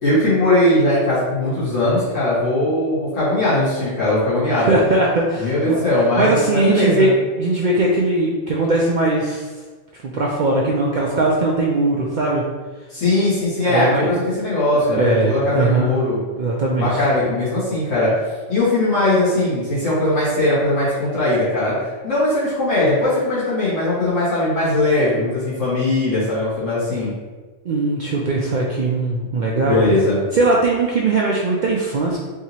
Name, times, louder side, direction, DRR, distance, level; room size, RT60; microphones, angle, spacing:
voice 1, 0.0-4.8 5.4-7.1 12.9-16.2 16.8-27.1 29.6-30.2, left 1 dB, 90° left, -11 dB, 2.0 m, -19 dB
voice 2, 4.6-5.8 6.2-7.1 7.4-9.5 10.0-12.4 13.6-14.1 14.7-15.9 16.4-17.0 27.7-29.8 30.3-32.2, right 2 dB, 65° right, -3 dB, 0.5 m, -19 dB
4.7 x 2.7 x 2.8 m, 1.4 s
omnidirectional pair, 1.3 m